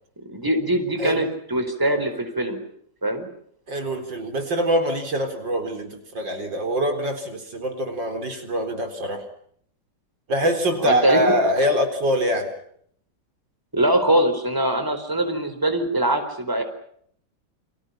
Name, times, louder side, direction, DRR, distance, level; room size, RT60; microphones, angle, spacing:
voice 1, 0.3-2.6 3.0-3.3 10.8-11.2 13.7-16.6, right 1 dB, 10° right, 7 dB, 4.4 m, -22 dB
voice 2, 3.7-9.3 10.3-12.5, equal, 80° right, 6 dB, 4.8 m, -24 dB
30.0 x 26.5 x 5.9 m, 0.66 s
omnidirectional pair, 2.0 m